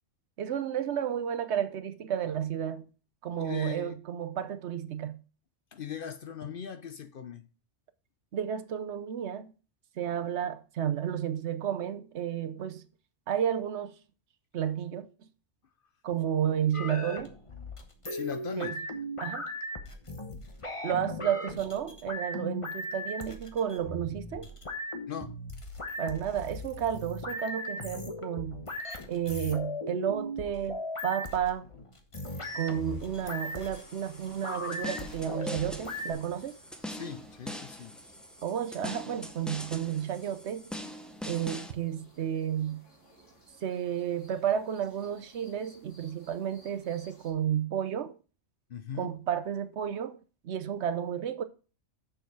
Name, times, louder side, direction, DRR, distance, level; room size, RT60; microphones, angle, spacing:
voice 1, 0.4-2.8 3.2-5.2 8.3-9.5 10.0-12.8 13.3-13.9 14.5-15.1 16.0-17.4 18.6-18.7 19.2-19.5 20.8-24.5 26.0-28.6 29.1-31.7 32.5-36.5 38.4-40.7 41.3-42.8 43.6-48.2 49.0-51.4, right 9 dB, 70° right, 1.0 m, -32 dB
voice 2, 3.4-4.0 5.7-7.5 18.1-18.8 25.1-25.4 36.9-38.0 48.7-49.1, left 7 dB, 55° left, 0.7 m, -39 dB
sound 1, 16.7-36.1, left 1 dB, 25° left, 1.1 m, -38 dB
sound 2, 32.2-47.3, right 1 dB, 80° left, 3.9 m, -58 dB
sound 3, 33.7-41.7, equal, ahead, 0.5 m, -43 dB
6.7 x 6.5 x 4.7 m
omnidirectional pair, 1.2 m